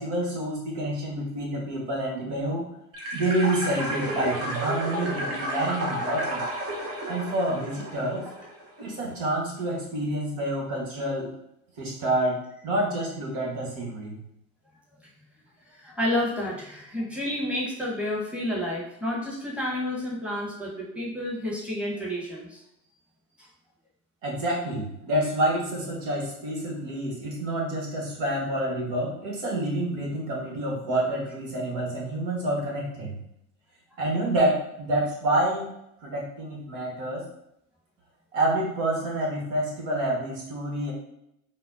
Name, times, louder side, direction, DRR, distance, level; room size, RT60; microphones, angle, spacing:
voice 1, 0.0-2.6 3.1-6.4 7.1-8.2 8.8-11.3 11.8-12.4 12.6-14.2 24.2-33.1 34.0-35.7 36.0-37.2 38.3-40.9, right 1 dB, 60° right, -2 dB, 1.4 m, -28 dB
sound 1, 2.9-8.7, right 1 dB, 30° right, 1.0 m, -32 dB
voice 2, 15.7-22.6 23.4-23.5, left 1 dB, 5° right, -5 dB, 1.1 m, -30 dB
4.1 x 2.1 x 2.5 m, 0.79 s
hypercardioid pair, 80°, 43 cm